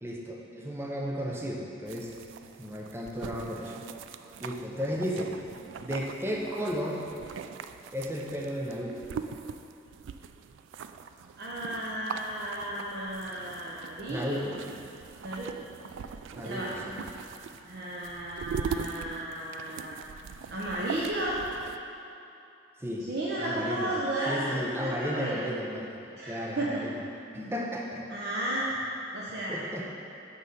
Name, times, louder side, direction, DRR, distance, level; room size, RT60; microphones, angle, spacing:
voice 1, 0.0-2.1 2.6-3.7 4.4-5.4 5.8-7.0 7.9-9.0 14.1-14.6 16.3-17.0 22.8-23.1 23.4-23.9 24.3-26.0 26.3-27.0 27.3-28.2 29.5-29.9, equal, 15° right, -2 dB, 0.5 m, -34 dB
sound 1, 1.9-21.8, right 6 dB, 85° right, 0.3 m, -41 dB
voice 2, 11.4-14.5 15.2-15.7 16.4-16.7 17.6-19.9 20.5-21.4 23.1-25.4 26.1-26.7 28.1-28.7 29.1-29.6, right 1 dB, 55° right, -6 dB, 0.7 m, -33 dB
6.4 x 5.4 x 5.2 m, 2.8 s
head